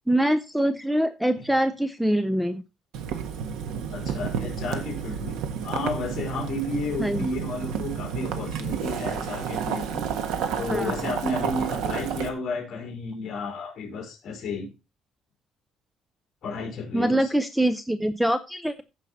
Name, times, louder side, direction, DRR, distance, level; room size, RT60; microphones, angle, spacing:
voice 1, 0.1-2.6 7.0-7.3 10.7-10.9 16.9-18.8, right 1 dB, ahead, 0.4 m, -24 dB
Boiling, 2.9-12.3, right 7 dB, 85° right, 1.5 m, -31 dB
voice 2, 3.9-10.0 10.6-14.7 16.4-17.3, left 3 dB, 40° left, 4.5 m, -32 dB
15.0 x 5.4 x 4.1 m
cardioid pair, 180°, 0 cm